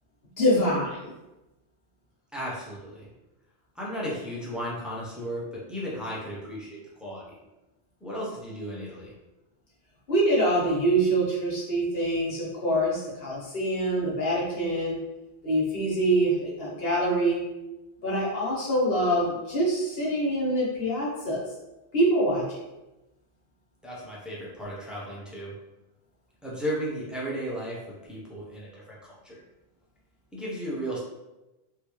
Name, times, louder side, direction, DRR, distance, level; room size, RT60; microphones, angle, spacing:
voice 1, 0.4-1.1 10.1-15.0 15.4-17.4 18.0-21.4 21.9-22.6, right 1 dB, 70° left, -6 dB, 1.3 m, -25 dB
voice 2, 2.3-3.0 3.8-7.3 8.0-9.1 23.8-25.5 26.4-29.4 30.3-31.0, equal, ahead, -6 dB, 0.6 m, -35 dB
3.4 x 2.3 x 3.0 m, 1.0 s
omnidirectional pair, 1.0 m